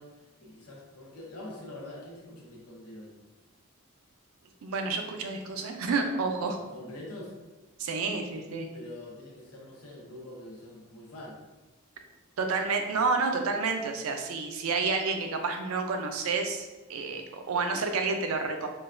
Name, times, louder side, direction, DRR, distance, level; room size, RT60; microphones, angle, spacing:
voice 1, 0.0-3.1 6.4-7.3 8.7-11.4, left 1 dB, 85° left, -3 dB, 0.9 m, -45 dB
voice 2, 4.6-6.6 7.8-8.7 12.4-18.7, right 4 dB, 70° right, 5 dB, 0.4 m, -29 dB
3.7 x 2.2 x 2.5 m, 1.2 s
head